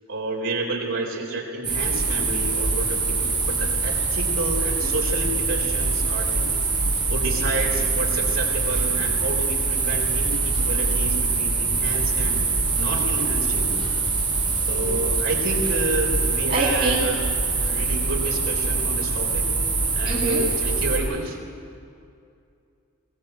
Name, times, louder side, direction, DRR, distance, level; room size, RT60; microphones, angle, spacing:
voice 1, 0.1-6.6 7.1-12.4 12.8-13.8 14.7-17.2 17.6-19.5 19.9-21.4, right 2 dB, 60° right, 0 dB, 4.0 m, -30 dB
sound 1, 1.6-21.0, right 4 dB, 20° right, 6.6 m, -24 dB
voice 2, 14.7-15.0 16.5-17.1 20.0-20.4, right 2 dB, 40° right, -5 dB, 2.4 m, -26 dB
22.0 x 19.0 x 7.8 m, 2.5 s
head